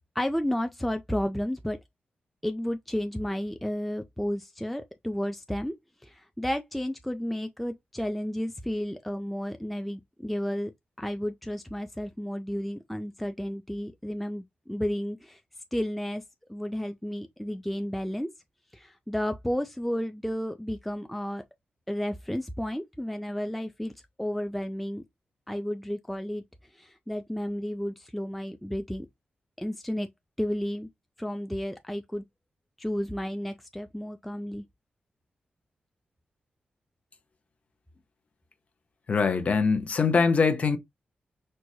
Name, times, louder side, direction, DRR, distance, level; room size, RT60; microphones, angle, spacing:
voice 1, 0.2-1.8 2.4-5.7 6.0-10.7 11.0-15.4 15.7-16.2 16.5-18.3 18.7-21.4 21.9-23.9 24.2-25.0 25.5-26.4 26.7-29.1 29.6-30.1 30.4-30.9 31.2-32.2 32.8-34.6, equal, ahead, 0.3 m, -32 dB
voice 2, 39.1-40.8, left 5 dB, 40° left, 0.7 m, -23 dB
4.5 x 2.0 x 2.7 m
wide cardioid pair, 135°, 3 cm